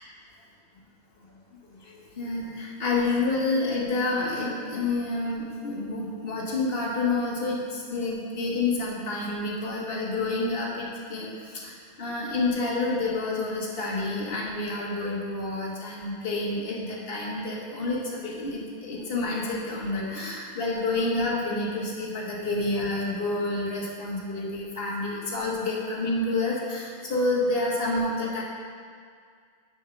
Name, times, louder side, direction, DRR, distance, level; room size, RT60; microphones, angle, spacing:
voice 1, 1.8-28.4, left 2 dB, 35° left, -4 dB, 1.2 m, -29 dB
7.1 x 4.9 x 5.8 m, 2.1 s
omnidirectional pair, 2.2 m